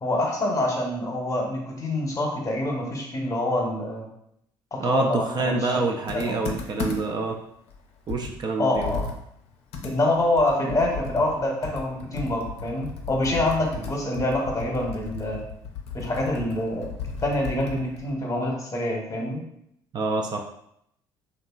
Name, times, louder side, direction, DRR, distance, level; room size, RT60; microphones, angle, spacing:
voice 1, 0.0-4.1 4.7-5.7 6.1-6.4 8.6-9.1 9.8-15.4 15.9-16.9 17.2-19.4, left 1 dB, 30° left, 0 dB, 0.8 m, -26 dB
voice 2, 4.8-7.4 8.1-8.9 13.8-13.9 19.9-20.5, right 3 dB, 40° right, 2 dB, 0.4 m, -27 dB
Computer keyboard, 6.1-7.3 7.7-7.8 8.1-11.4 11.6-18.1, left 5 dB, 70° left, 0.5 m, -35 dB
2.7 x 2.4 x 2.3 m, 0.74 s
hypercardioid pair, 60°, 11 cm